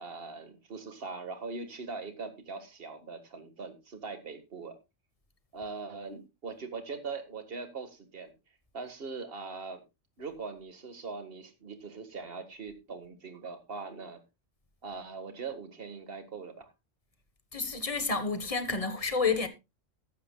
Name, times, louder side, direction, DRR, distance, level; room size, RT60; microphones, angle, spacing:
voice 1, 0.0-4.8 5.5-8.3 8.7-9.8 10.2-14.2 14.8-16.7, right 4 dB, 50° right, 1.9 m, -41 dB
voice 2, 17.5-19.5, left 4 dB, 30° left, 1.3 m, -30 dB
14.5 x 12.0 x 2.3 m
omnidirectional pair, 1.3 m